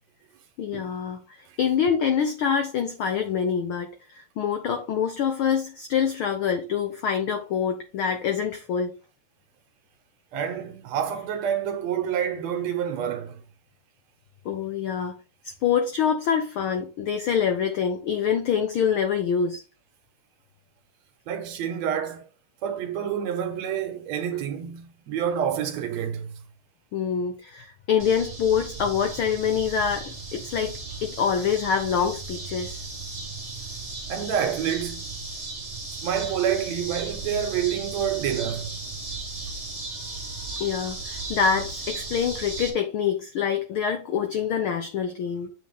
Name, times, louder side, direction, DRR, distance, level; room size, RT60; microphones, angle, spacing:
voice 1, 0.6-8.9 14.4-15.1 15.6-19.6 26.9-32.8 40.0-40.1 40.6-45.5, left 7 dB, 85° left, 1.1 m, -25 dB
voice 2, 10.3-13.4 21.3-22.2 22.6-26.3 34.1-35.0 36.0-38.7, right 8 dB, 70° right, 2.1 m, -28 dB
sound 1, 28.0-42.7, right 3 dB, 50° right, 0.4 m, -36 dB
8.4 x 4.4 x 3.5 m
omnidirectional pair, 3.3 m